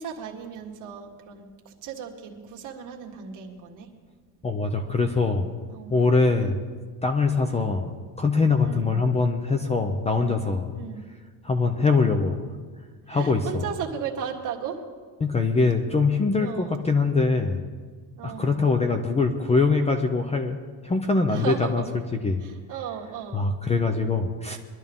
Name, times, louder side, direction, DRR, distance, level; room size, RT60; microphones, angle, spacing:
voice 1, 0.0-3.9 5.7-6.1 7.4-7.8 8.6-9.0 10.1-10.4 10.7-11.1 13.1-14.8 16.4-16.8 18.2-18.7 21.3-21.9 22.4-23.5, right 7 dB, 45° right, 0 dB, 1.9 m, -36 dB
voice 2, 4.4-5.5 5.9-6.6 7.0-7.9 8.2-10.7 11.4-12.4 13.1-13.7 15.2-17.6 18.2-20.6 20.8-21.8 22.2-22.4 23.3-24.6, left 4 dB, 15° left, 5 dB, 0.5 m, -23 dB
22.5 x 12.5 x 3.6 m, 1.5 s
cardioid pair, 170°, 42 cm